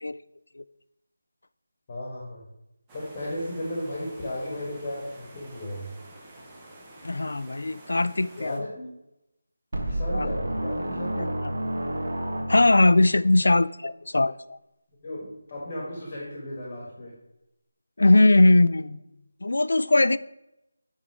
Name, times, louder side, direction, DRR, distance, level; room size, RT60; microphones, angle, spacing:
voice 1, 1.9-2.5 2.9-5.9 8.4-8.9 9.8-11.4 15.0-17.1, left 1 dB, 25° left, -4 dB, 1.5 m, -35 dB
sound 1, 2.9-8.6, right 1 dB, 10° right, 0.7 m, -49 dB
voice 2, 7.0-8.6 10.1-10.3 11.2-11.5 12.5-14.6 18.0-19.0 19.4-20.2, left 2 dB, 75° left, 16 dB, 0.3 m, -20 dB
sound 2, 9.7-13.0, right 1 dB, 70° right, 1.3 m, -30 dB
9.5 x 3.7 x 4.8 m, 0.88 s
figure-of-eight pair, 170°, 0 cm